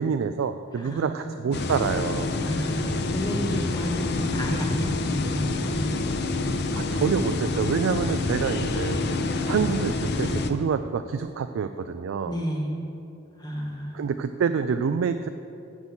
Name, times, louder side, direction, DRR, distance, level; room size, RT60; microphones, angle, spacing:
voice 1, 0.0-2.3 6.8-9.0 9.5-12.4 13.9-15.3, right 6 dB, 75° right, 9 dB, 0.3 m, -27 dB
voice 2, 0.7-1.4 2.4-6.0 12.3-12.8 13.4-14.0, equal, 20° left, 0 dB, 1.2 m, -31 dB
sound 1, 1.5-10.5, left 2 dB, 55° left, 0.5 m, -27 dB
7.9 x 6.1 x 7.0 m, 2.6 s
head